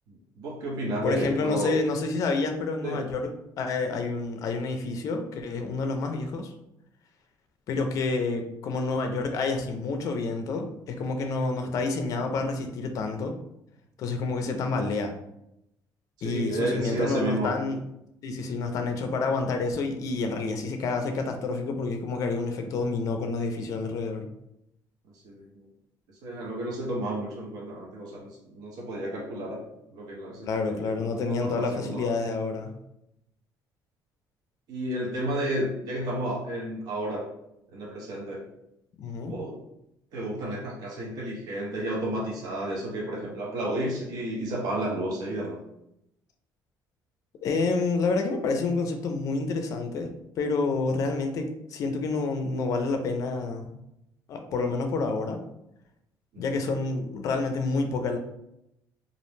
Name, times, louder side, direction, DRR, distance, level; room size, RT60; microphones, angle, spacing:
voice 1, 0.1-1.8 2.8-3.0 11.6-11.7 16.2-17.5 25.2-25.7 26.2-29.6 29.9-32.1 34.7-37.3 37.7-38.4 39.3-39.6 40.1-45.6, right 1 dB, 60° right, -2 dB, 0.6 m, -32 dB
voice 2, 1.0-3.3 3.6-6.5 7.7-13.4 14.0-15.1 16.2-17.8 18.2-24.3 30.4-32.7 39.0-39.3 47.4-50.1 50.4-53.7 54.3-55.4 56.4-58.2, left 3 dB, 50° left, 5 dB, 0.4 m, -28 dB
2.4 x 2.0 x 3.1 m, 0.82 s
cardioid pair, 150°, 7 cm